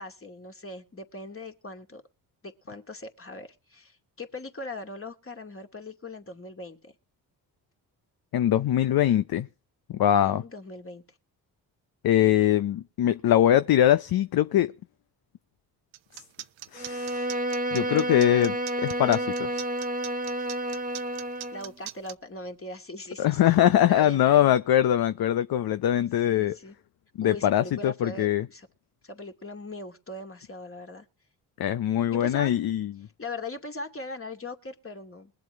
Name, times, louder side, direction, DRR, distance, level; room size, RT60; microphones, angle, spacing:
voice 1, 0.0-2.0 2.4-6.9 10.2-11.2 21.5-23.5 23.9-24.5 26.3-26.8 27.2-28.7 29.0-31.1 32.1-32.5 33.2-35.3, left 2 dB, 25° left, 2.6 m, -40 dB
voice 2, 8.3-9.5 9.9-10.4 12.0-14.7 16.7-17.3 17.7-19.6 23.2-26.6 27.2-28.5 31.6-33.1, left 11 dB, 50° left, 0.8 m, -22 dB
sound 1, 15.9-22.1, right 15 dB, 65° right, 0.9 m, -41 dB
Bowed string instrument, 16.7-21.7, right 1 dB, 15° right, 1.4 m, -30 dB
22.0 x 7.6 x 3.7 m
hypercardioid pair, 45°, 47 cm